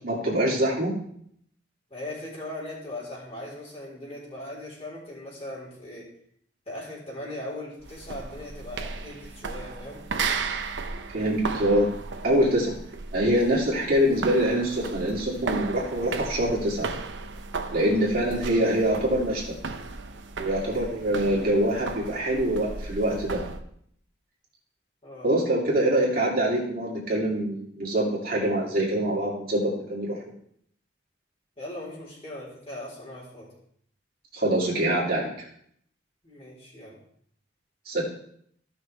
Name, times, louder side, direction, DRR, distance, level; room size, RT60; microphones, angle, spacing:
voice 1, 0.0-0.9 11.1-11.9 12.2-12.7 13.1-16.9 17.7-19.5 20.4-23.4 25.2-30.2 34.3-35.5 37.9-38.0, right 1 dB, 50° right, -4 dB, 2.7 m, -24 dB
voice 2, 1.9-6.1 6.7-10.0 25.0-25.3 31.6-33.5 36.2-37.0, left 1 dB, 35° left, -5 dB, 4.1 m, -39 dB
sound 1, 7.8-23.6, right 4 dB, 80° right, 0.8 m, -35 dB
15.5 x 6.2 x 3.4 m, 0.66 s
head